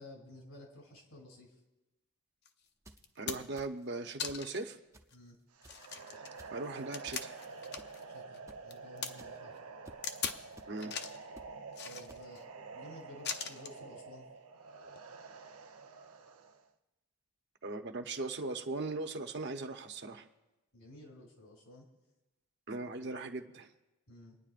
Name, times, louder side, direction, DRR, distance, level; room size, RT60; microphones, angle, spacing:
voice 1, 0.0-1.6 5.1-5.4 8.1-9.6 11.8-14.3 20.7-21.8 22.8-23.1 24.1-24.4, left 1 dB, 70° left, 0 dB, 3.1 m, -53 dB
sound 1, 2.5-2.6 3.0-3.6 4.2-4.7 5.1-5.2 5.6-8.0 8.3-9.1 10.0-10.4 10.8-11.2 11.7-12.4 13.2-13.8 14.9-15.0, left 7 dB, 45° left, 0.7 m, -40 dB
sound 2, 2.7-3.1 3.6-3.9 4.3-4.5 4.9-5.3 5.6-5.9 6.4-6.6 7.1-7.2 7.8-8.0 8.5-8.6 9.2-9.3 9.8-10.0 10.6-10.7 11.3-11.5 12.1-12.2, right 1 dB, 15° right, 0.5 m, -54 dB
voice 2, 3.2-4.8 6.5-7.3 10.7-10.9 17.6-20.3 22.7-23.7, right 3 dB, 50° right, 5 dB, 0.8 m, -39 dB
sound 3, 5.5-16.7, right 4 dB, 80° right, 0.8 m, -49 dB
28.5 x 9.8 x 2.5 m, 1.0 s
head